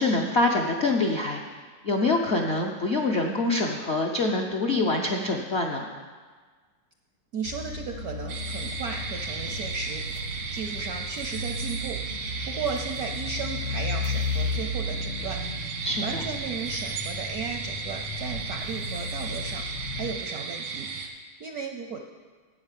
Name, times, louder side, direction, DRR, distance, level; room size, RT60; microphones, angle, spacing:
voice 1, 0.0-1.4 1.8-5.9 15.8-16.2, left 2 dB, 65° left, 0 dB, 0.6 m, -25 dB
voice 2, 7.3-12.0 12.4-15.4 15.7-20.9 21.2-22.0, right 5 dB, 70° right, 4 dB, 0.9 m, -35 dB
sound 1, 7.4-20.2, left 3 dB, 85° left, 2.1 m, -34 dB
sound 2, 8.3-21.1, right 5 dB, 90° right, 2.2 m, -35 dB
9.8 x 8.1 x 7.4 m, 1.5 s
omnidirectional pair, 2.3 m